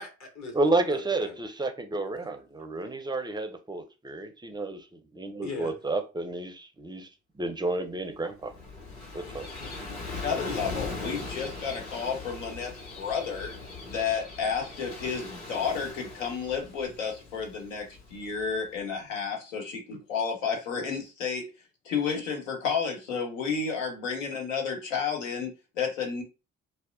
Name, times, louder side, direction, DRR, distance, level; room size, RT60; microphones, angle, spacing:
voice 1, 0.0-0.5 0.9-1.4 5.4-5.7 9.2-10.3, left 4 dB, 45° left, 3 dB, 0.9 m, -42 dB
voice 2, 0.5-7.1 7.4-8.5 9.1-9.5, right 2 dB, 10° right, 7 dB, 0.4 m, -31 dB
Gull seagull / Waves surf, 8.2-18.7, left 3 dB, 65° left, 1.4 m, -40 dB
voice 3, 10.2-13.5 13.9-21.5 21.8-26.2, left 6 dB, 85° left, 1 dB, 0.7 m, -31 dB
2.7 x 2.1 x 2.4 m, 0.29 s
hypercardioid pair, 45°, 38 cm